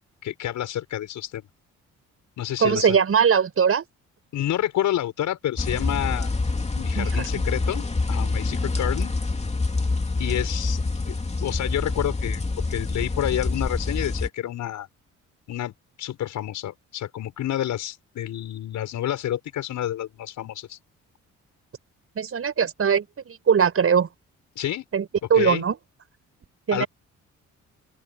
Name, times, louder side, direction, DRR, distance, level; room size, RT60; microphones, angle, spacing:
voice 1, 0.2-1.4 2.4-3.0 4.3-6.3 6.8-9.1 10.2-11.1 11.4-12.4 12.7-14.9 15.5-15.7 16.0-20.8 24.6-24.8 25.3-25.6 26.7-26.9, left 12 dB, 75° left, 5.9 m, -29 dB
voice 2, 2.6-3.8 7.0-7.1 7.3-7.4 22.2-24.1 24.9-25.1 25.3-25.8 26.7-26.9, right 7 dB, 50° right, 6.9 m, -20 dB
sound 1, 5.6-14.3, left 3 dB, 20° left, 2.9 m, -26 dB
open air
cardioid pair, 90°, 30 cm